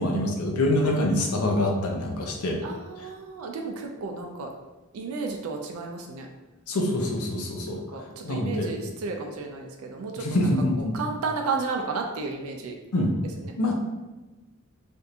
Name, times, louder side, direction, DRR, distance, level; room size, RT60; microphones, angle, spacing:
voice 1, 0.0-2.6 6.7-7.8 8.2-8.7 10.2-10.9 12.9-13.1 13.6-13.7, left 1 dB, 85° left, 1 dB, 0.6 m, -25 dB
voice 2, 2.6-4.5 4.9-6.3 7.7-10.3 10.9-12.7 13.4-13.5, right 4 dB, 70° right, 2 dB, 0.4 m, -33 dB
3.5 x 2.5 x 2.7 m, 1.2 s
head